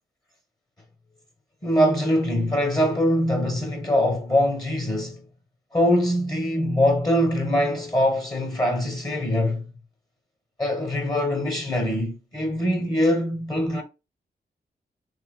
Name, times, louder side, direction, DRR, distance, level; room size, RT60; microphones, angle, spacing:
voice 1, 1.6-5.2 5.7-9.7 10.6-13.8, equal, 25° left, 0.9 m, -23 dB
3.3 x 2.9 x 2.2 m
cardioid pair, 65°, 17 cm